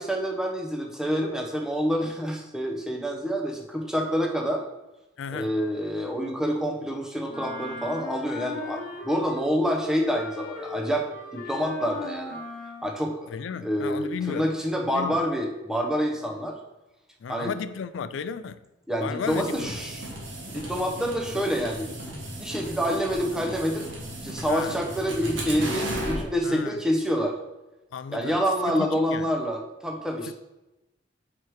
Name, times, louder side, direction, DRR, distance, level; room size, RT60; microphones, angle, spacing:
voice 1, 0.0-4.6 5.3-12.4 12.8-13.3 13.6-16.6 17.3-17.5 18.9-20.1 20.5-22.1 22.4-23.8 24.2-27.4 28.1-30.3, equal, 5° right, 0.7 m, -27 dB
voice 2, 5.2-5.5 13.3-14.5 14.8-15.2 17.2-18.6 19.0-19.8 24.5-24.8 26.4-26.8 27.9-28.4 28.7-29.3 30.2-30.3, left 6 dB, 75° left, 0.4 m, -34 dB
Wind instrument woodwind instrument, 7.3-9.5 9.8-12.9, left 3 dB, 45° left, 1.0 m, -37 dB
sound 1, 19.2-26.2, right 1 dB, 70° right, 1.4 m, -35 dB
4.8 x 4.6 x 4.6 m
head